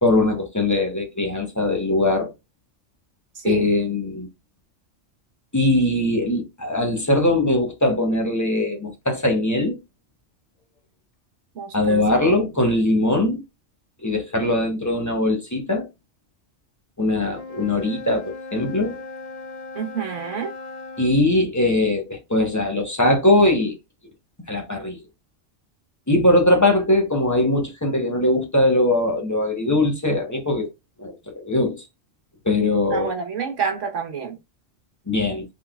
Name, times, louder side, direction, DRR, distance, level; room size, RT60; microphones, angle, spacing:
voice 1, 0.0-2.3 3.4-4.3 5.5-9.8 11.7-13.4 14.0-15.9 17.0-19.0 21.0-23.7 24.5-25.0 26.1-30.7 31.0-31.8 32.4-33.1 35.1-35.4, left 2 dB, 15° left, 0.8 m, -21 dB
voice 2, 3.3-3.7 11.5-12.0 19.7-20.5 32.9-34.4, right 6 dB, 75° right, 1.4 m, -28 dB
Wind instrument woodwind instrument, 17.2-21.2, left 2 dB, 50° left, 0.4 m, -37 dB
4.0 x 3.6 x 2.4 m
omnidirectional pair, 1.3 m